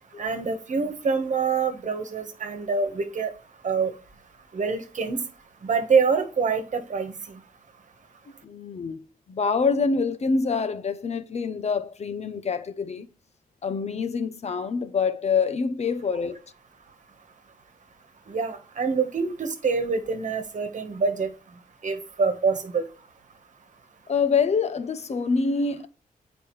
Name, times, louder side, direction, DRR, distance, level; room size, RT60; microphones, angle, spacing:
voice 1, 0.2-3.3 3.6-3.9 4.5-5.2 5.6-7.1 18.3-21.3 21.8-22.8, right 5 dB, 55° right, 1.3 m, -25 dB
voice 2, 8.4-13.1 13.6-16.4 24.1-25.9, left 5 dB, 45° left, 0.8 m, -26 dB
9.0 x 5.1 x 3.2 m
wide cardioid pair, 105°, 15 cm